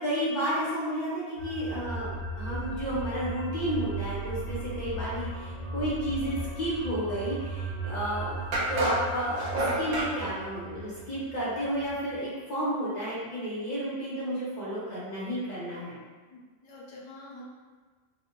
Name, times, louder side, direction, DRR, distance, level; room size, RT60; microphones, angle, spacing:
voice 1, 0.0-8.4 8.7-16.0, equal, 35° left, -10 dB, 1.4 m, -32 dB
sound 1, 1.4-12.2, right 2 dB, 85° left, 1.8 m, -37 dB
sound 2, 7.7-7.8 8.5-10.1, right 1 dB, 85° right, 1.2 m, -29 dB
voice 2, 16.3-17.5, left 1 dB, 65° left, -5 dB, 0.3 m, -46 dB
4.0 x 2.3 x 3.0 m, 1.4 s
omnidirectional pair, 1.4 m